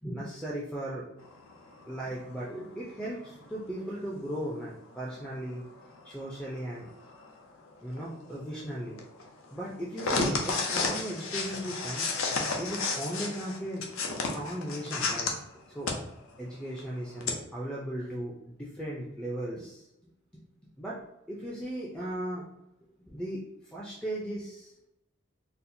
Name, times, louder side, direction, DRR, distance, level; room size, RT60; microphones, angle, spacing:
voice 1, 0.0-1.0 1.9-5.6 6.0-6.9 7.8-9.0 9.5-12.1 12.6-13.8 14.1-15.3 15.7-16.1 16.4-19.9 20.3-20.4 20.8-21.0 21.3-22.4 23.1-23.4 23.7-24.7, right 1 dB, 5° left, -7 dB, 0.4 m, -37 dB
sound 1, 1.2-4.0 4.5-15.3 15.8-15.9 16.3-16.4 16.8-17.3, left 4 dB, 80° left, 0.6 m, -33 dB
4.1 x 2.1 x 2.6 m, 0.86 s
head